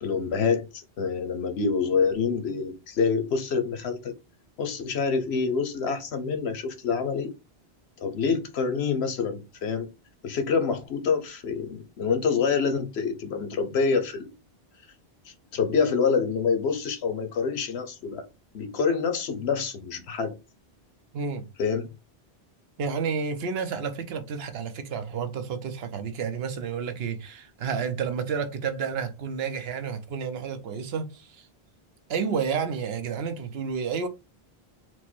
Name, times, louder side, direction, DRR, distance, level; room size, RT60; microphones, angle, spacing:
voice 1, 0.0-4.1 4.6-7.3 8.0-9.9 10.2-14.3 15.3-18.3 18.5-20.3 21.6-21.9, left 5 dB, 85° left, 1.0 m, -26 dB
voice 2, 21.1-21.5 22.8-31.4 32.1-34.1, right 6 dB, 75° right, 0.9 m, -30 dB
4.5 x 2.1 x 4.3 m
omnidirectional pair, 1.1 m